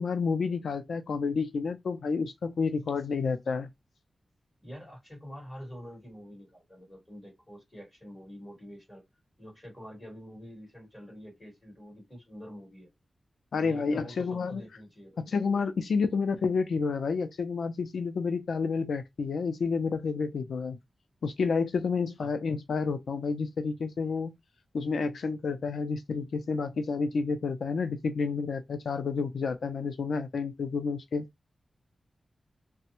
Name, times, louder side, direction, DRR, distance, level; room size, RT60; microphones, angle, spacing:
voice 1, 0.0-3.7 13.5-14.6 15.2-20.8 21.2-24.3 24.7-31.3, left 5 dB, 85° left, 0.3 m, -30 dB
voice 2, 4.6-9.0 9.4-12.9 13.6-15.3 20.4-20.5 22.2-22.3, equal, 15° left, 2.2 m, -46 dB
3.3 x 2.0 x 2.8 m
wide cardioid pair, 165°, 0 cm